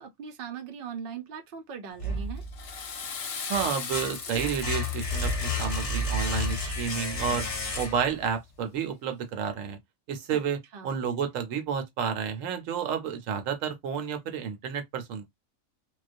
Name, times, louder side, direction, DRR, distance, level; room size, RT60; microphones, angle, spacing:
voice 1, 0.0-2.4 10.7-11.0, right 6 dB, 60° right, 0.6 m, -40 dB
sound 1, 2.0-2.8 3.2-8.3, left 2 dB, 40° left, 0.5 m, -31 dB
Water / Toilet flush, 2.4-7.6, left 6 dB, 60° left, 0.9 m, -39 dB
voice 2, 3.5-7.5 7.7-9.8 10.1-15.3, right 7 dB, 75° right, 1.0 m, -31 dB
2.3 x 2.1 x 2.5 m
omnidirectional pair, 1.4 m